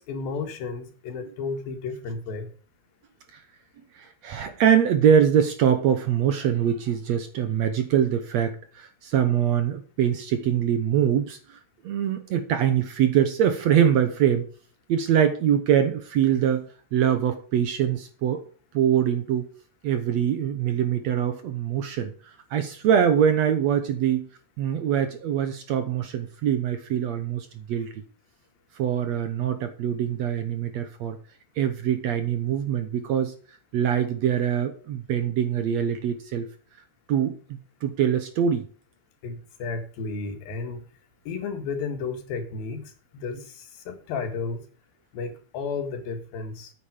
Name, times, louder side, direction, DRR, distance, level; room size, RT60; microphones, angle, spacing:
voice 1, 0.0-2.5 39.2-40.8 41.3-44.6 45.1-46.7, left 4 dB, 85° left, 6 dB, 3.6 m, -33 dB
voice 2, 4.0-11.6 11.8-14.5 14.9-18.4 18.7-19.5 19.8-24.3 24.6-28.0 28.8-31.2 31.6-33.3 33.7-36.5 37.1-38.7, right 9 dB, 65° right, 9 dB, 1.8 m, -23 dB
9.3 x 8.6 x 5.1 m, 0.41 s
omnidirectional pair, 4.0 m